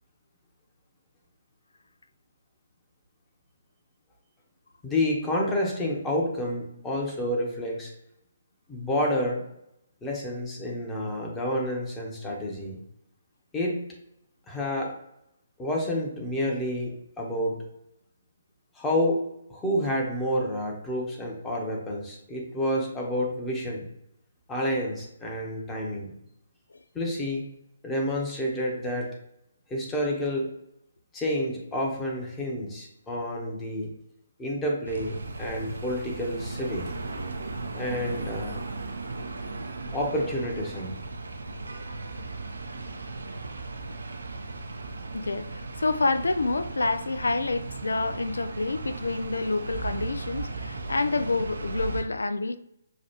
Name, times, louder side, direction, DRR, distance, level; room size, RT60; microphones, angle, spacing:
voice 1, 4.8-7.9 8.7-9.4 10.0-12.8 13.5-13.8 14.5-14.9 15.6-17.6 18.7-19.2 19.5-23.8 24.5-26.1 26.9-27.4 27.8-29.1 29.7-30.5 31.1-33.9 34.4-36.9 37.7-38.7 39.9-41.0, left 1 dB, 10° left, 1.0 m, -29 dB
sound 1, 34.9-52.0, right 3 dB, 70° right, 0.5 m, -36 dB
voice 2, 45.1-52.6, left 3 dB, 75° left, 0.3 m, -28 dB
6.3 x 2.4 x 2.9 m
figure-of-eight pair, 135°, 0 cm